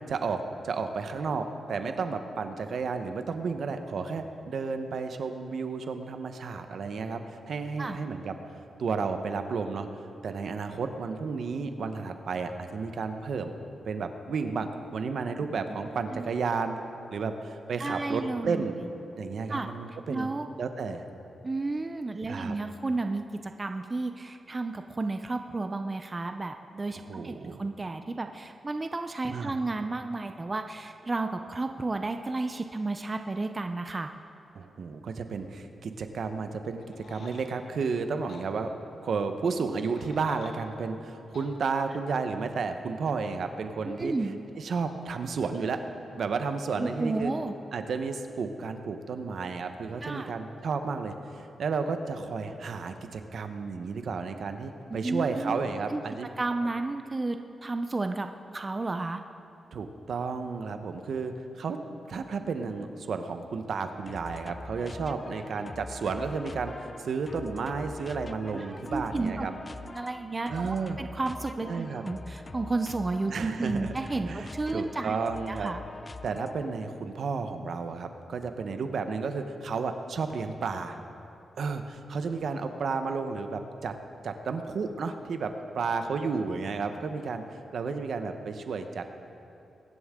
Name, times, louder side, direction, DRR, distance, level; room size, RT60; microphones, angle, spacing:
voice 1, 0.1-8.3 8.8-9.9 10.2-13.6 13.8-16.8 17.1-18.8 19.2-20.3 20.6-21.1 22.3-22.5 27.1-27.6 29.3-29.5 34.5-38.7 39.0-44.1 44.6-45.8 46.1-47.3 47.7-56.3 59.7-69.5 70.5-71.0 71.7-72.0 73.3-73.9 74.3-75.7 76.2-81.0 81.6-84.0 84.2-87.4 87.7-89.0, right 4 dB, 70° right, 7 dB, 0.9 m, -32 dB
voice 2, 17.8-18.6 19.5-19.7 20.1-20.5 21.4-34.1 44.0-44.4 46.8-47.5 50.0-50.3 55.0-55.6 55.9-56.0 56.4-58.3 58.5-59.2 68.5-69.5 69.8-75.2 75.5-75.8, right 3 dB, 25° right, 6 dB, 0.5 m, -32 dB
sound 1, 36.8-37.5 38.3-38.5 39.6-40.6 41.3-41.5, left 3 dB, 70° left, 1.7 m, -50 dB
sound 2, 64.1-76.8, left 2 dB, 30° left, 0.4 m, -44 dB
22.0 x 11.0 x 3.7 m, 2.8 s
cardioid pair, 100°, 0 cm